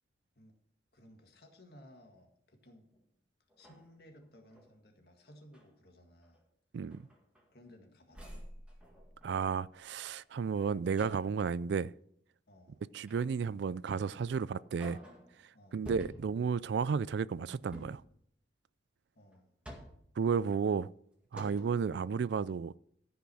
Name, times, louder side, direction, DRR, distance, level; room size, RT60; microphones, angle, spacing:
voice 1, 0.9-2.9 3.6-6.4 7.5-8.4 12.5-12.8 15.5-15.9 19.2-19.5, equal, 55° left, 1.9 m, -58 dB
sound 1, 2.9-3.0 3.5-4.7 5.3-5.7 6.2-6.4 6.9-7.8 8.1-9.7 11.0-11.5 13.1-13.5 14.0-14.1 14.6-15.4 15.8-16.5 17.6-18.1 19.3-20.2 20.9-21.0 21.3-21.9, equal, 5° right, 2.0 m, -50 dB
voice 2, 9.2-11.9 12.9-15.0 15.7-18.0 20.2-20.9 21.3-22.8, right 6 dB, 65° right, 0.3 m, -33 dB
14.0 x 5.8 x 6.3 m
head